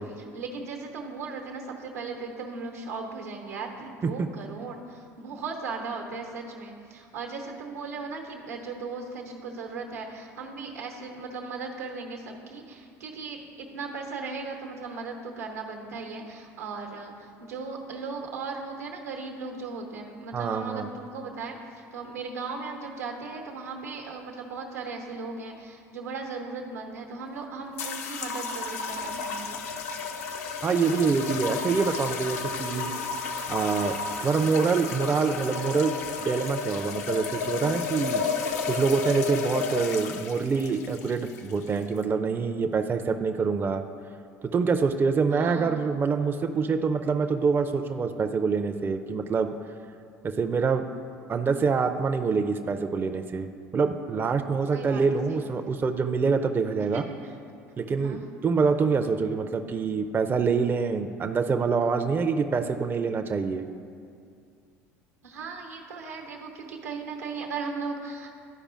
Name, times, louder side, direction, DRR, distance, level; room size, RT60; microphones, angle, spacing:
voice 1, 0.0-29.6 45.3-45.8 54.7-55.7 56.9-57.3 58.0-58.3 65.2-68.3, right 4 dB, 85° right, 2 dB, 0.8 m, -37 dB
voice 2, 20.3-20.9 30.6-32.9 33.5-33.9 34.2-38.2 38.7-43.8 44.4-49.5 50.2-50.9 51.3-53.5 53.7-57.0 57.8-63.6, right 5 dB, 25° right, 7 dB, 0.4 m, -26 dB
sound 1, 27.8-42.0, left 5 dB, 75° left, 0.5 m, -32 dB
11.5 x 4.9 x 2.4 m, 2.3 s
hypercardioid pair, 70°, 8 cm